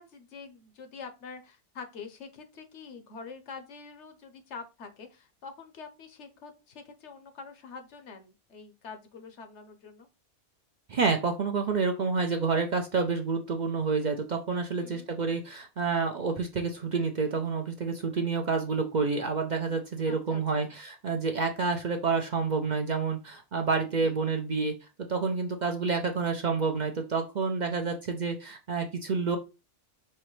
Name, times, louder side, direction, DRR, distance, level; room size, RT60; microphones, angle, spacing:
voice 1, 0.0-10.1 14.8-15.1 20.1-20.7 24.0-24.1 25.8-25.9, left 5 dB, 75° left, 7 dB, 1.1 m, -46 dB
voice 2, 10.9-24.7 25.1-29.4, right 4 dB, 50° right, 4 dB, 0.6 m, -29 dB
5.6 x 3.0 x 3.1 m, 0.28 s
omnidirectional pair, 1.2 m